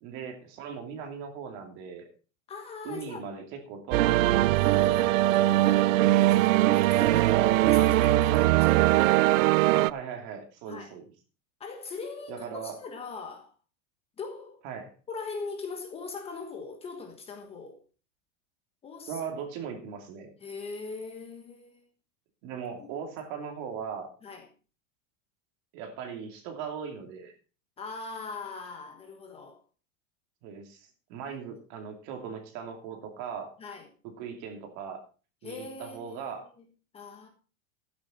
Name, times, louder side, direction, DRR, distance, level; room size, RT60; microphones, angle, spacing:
voice 1, 0.0-2.1 2.8-4.5 7.0-7.5 9.7-11.0 12.3-12.8 14.6-15.0 19.1-20.3 22.4-24.1 25.7-27.3 30.4-33.5 34.2-35.0 35.4-36.5, right 7 dB, 40° right, 2.6 m, -38 dB
voice 2, 2.5-3.2 4.5-7.3 7.6-9.4 10.7-10.9 11.6-13.5 14.2-14.6 15.1-17.8 18.8-19.2 20.4-21.8 22.8-22.9 24.2-24.5 27.8-29.6 33.6-33.9 35.4-36.3 36.9-37.3, left 4 dB, 15° left, 1.4 m, -41 dB
sound 1, 3.9-9.9, right 16 dB, 90° right, 0.6 m, -21 dB
13.0 x 9.6 x 4.2 m
supercardioid pair, 175°, 38 cm